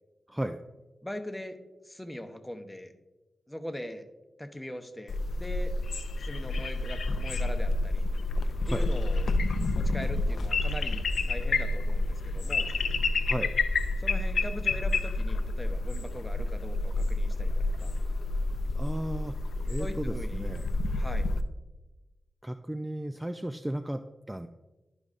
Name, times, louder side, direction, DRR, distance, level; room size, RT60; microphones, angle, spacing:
voice 1, 0.3-0.6 8.6-8.9 13.3-13.5 18.8-19.3 19.7-20.7 22.4-24.5, right 1 dB, 15° right, 8 dB, 0.3 m, -34 dB
voice 2, 1.0-1.6 1.8-2.9 3.5-4.1 4.4-5.7 6.2-8.1 8.7-9.3 9.7-12.7 14.0-17.9 19.8-20.5 21.0-21.3, left 1 dB, 10° left, 7 dB, 0.8 m, -41 dB
sound 1, 5.1-21.4, left 2 dB, 80° left, 0.4 m, -29 dB
11.5 x 5.2 x 2.5 m, 1.1 s
cardioid pair, 55°, 0 cm